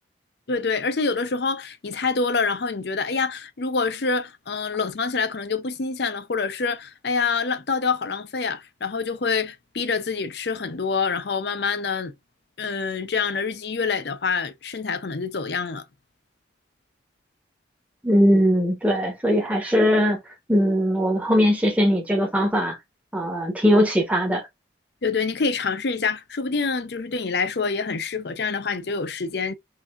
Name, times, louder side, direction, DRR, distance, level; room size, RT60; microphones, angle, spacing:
voice 1, 0.5-12.1 12.6-15.8 25.0-29.5, left 4 dB, 60° left, 0.6 m, -26 dB
voice 2, 18.0-20.2 20.5-22.8 23.1-24.5, equal, 10° right, 0.9 m, -20 dB
5.7 x 2.7 x 2.4 m
head